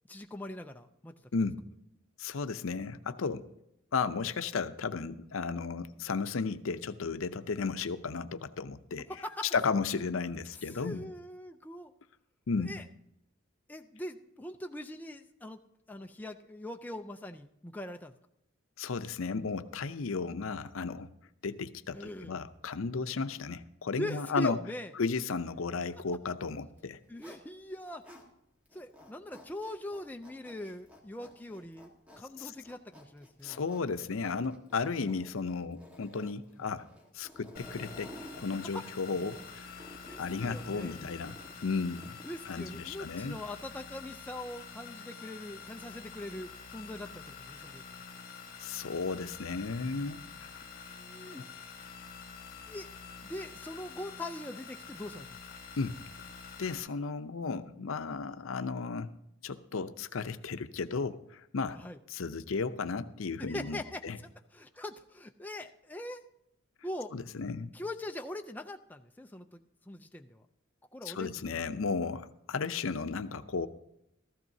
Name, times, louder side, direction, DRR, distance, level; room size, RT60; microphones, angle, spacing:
voice 1, 0.1-1.1 9.1-9.5 10.7-11.9 12.6-12.8 13.7-15.6 15.9-18.1 21.9-22.4 24.0-24.9 27.1-28.0 28.7-33.6 36.6-36.7 38.6-38.9 40.0-41.0 42.3-47.8 50.9-51.4 52.7-52.9 53.2-55.4 61.8-62.0 63.4-64.1 64.5-66.2 66.8-67.1 67.7-69.6 69.9-70.4 70.9-71.6, left 1 dB, 10° left, 5 dB, 0.4 m, -42 dB
voice 2, 2.2-3.5 3.9-9.1 9.5-11.1 12.5-12.8 18.8-21.1 21.4-24.6 24.9-27.0 32.4-32.5 33.4-36.9 37.1-39.8 40.2-42.2 42.5-43.4 48.6-50.7 51.2-51.4 55.8-56.0 56.6-59.1 59.4-61.8 62.1-64.2 67.1-67.7 71.0-73.7, left 4 dB, 85° left, 11 dB, 0.6 m, -34 dB
Zipper (clothing), 26.7-28.3 28.7-42.4, left 1 dB, 5° right, 1.4 m, -53 dB
sound 1, 37.5-56.8, left 5 dB, 45° left, 1.5 m, -47 dB
15.0 x 14.0 x 2.7 m, 0.80 s
head